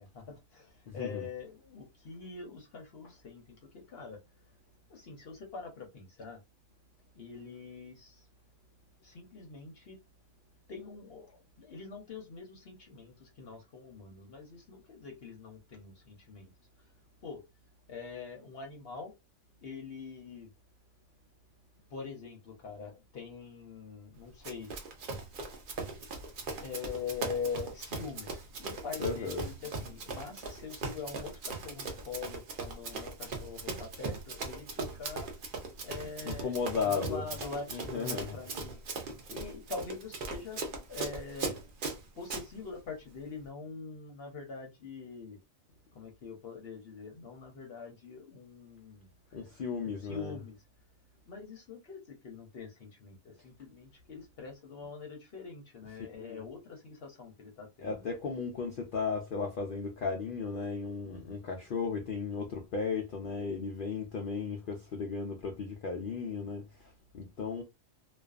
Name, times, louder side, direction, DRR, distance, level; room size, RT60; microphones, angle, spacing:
voice 1, 0.0-4.5 4.9-6.4 7.1-8.3 9.0-10.0 10.7-16.5 16.8-16.9 17.2-17.4 17.9-19.1 19.6-20.5 21.9-24.7 26.6-35.3 35.8-40.6 40.9-41.7 42.2-45.4 45.9-50.6 51.3-58.1, left 5 dB, 55° left, 0.8 m, -44 dB
voice 2, 0.9-1.2 29.0-29.4 36.3-37.2 37.7-38.4 49.3-50.3 56.2-56.4 57.8-67.6, left 5 dB, 85° left, 0.4 m, -35 dB
Run, 24.4-42.5, right 3 dB, 55° right, 0.6 m, -39 dB
2.4 x 2.2 x 2.3 m
omnidirectional pair, 1.4 m